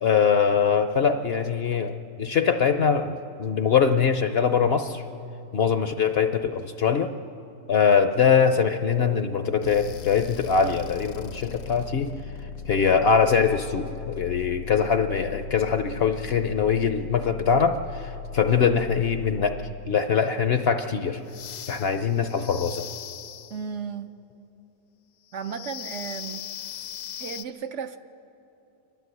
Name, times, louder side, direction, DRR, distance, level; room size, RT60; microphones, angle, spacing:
voice 1, 0.0-5.0 5.5-7.1 7.7-12.1 12.7-19.6 19.9-21.2 21.7-22.9, left 6 dB, 55° left, 0.8 m, -22 dB
sound 1, 9.6-20.0 21.3-23.7 25.3-27.4, left 7 dB, 70° left, 1.1 m, -39 dB
voice 2, 23.5-24.2 25.3-26.5 27.2-28.0, right 6 dB, 60° right, 0.9 m, -34 dB
28.0 x 12.0 x 8.0 m
omnidirectional pair, 1.5 m